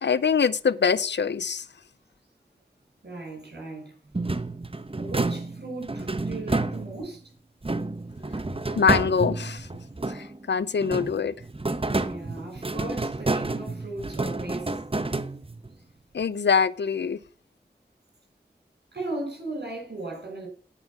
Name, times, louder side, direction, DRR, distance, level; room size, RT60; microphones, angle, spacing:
voice 1, 0.0-1.7 8.8-9.7 10.1-11.3 16.1-17.2, left 6 dB, 85° left, 0.6 m, -24 dB
voice 2, 3.0-3.9 5.0-7.3 12.0-14.8 18.9-20.5, right 2 dB, 75° right, 5.6 m, -37 dB
sound 1, 4.1-7.2 7.6-10.5 10.8-15.7, right 2 dB, 30° right, 1.0 m, -30 dB
9.9 x 5.7 x 7.2 m
wide cardioid pair, 40°, 18 cm